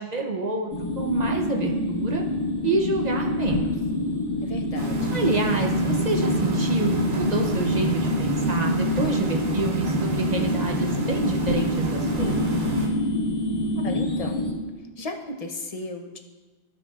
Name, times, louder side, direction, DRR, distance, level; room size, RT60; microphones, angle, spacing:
voice 1, 0.0-2.2 2.6-3.7 5.1-12.5, right 3 dB, 45° right, 2 dB, 0.6 m, -27 dB
sound 1, 0.7-14.5, left 2 dB, 80° left, 1.8 m, -26 dB
voice 2, 4.4-5.2 13.8-14.5 14.8-16.2, left 2 dB, 40° left, 4 dB, 0.7 m, -35 dB
sound 2, 4.7-12.9, right 3 dB, 80° right, 1.3 m, -29 dB
15.0 x 5.3 x 2.3 m, 1.2 s
omnidirectional pair, 1.2 m